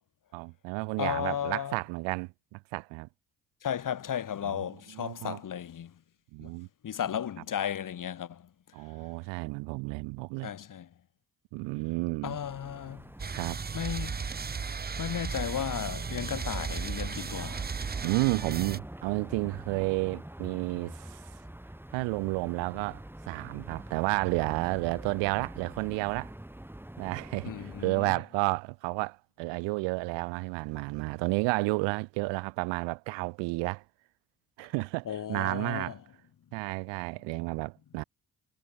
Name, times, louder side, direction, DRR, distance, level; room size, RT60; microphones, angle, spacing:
voice 1, 0.3-3.1 4.4-4.6 4.9-5.4 6.3-6.7 8.7-10.5 11.5-12.4 13.3-13.6 18.0-21.2 21.9-26.3 27.0-33.8 34.6-36.0 36.5-38.0, right 28 dB, 90° right, 0.5 m, -31 dB
voice 2, 1.0-1.8 3.6-5.9 6.4-6.5 6.8-8.5 10.4-10.9 12.2-13.1 13.7-14.3 15.0-17.6 27.4-28.2 35.1-36.0, left 9 dB, 50° left, 1.1 m, -34 dB
sound 1, 12.2-27.9, right 1 dB, 5° right, 1.4 m, -46 dB
sound 2, 13.2-18.8, right 5 dB, 25° right, 0.7 m, -35 dB
hypercardioid pair, 40°, 42 cm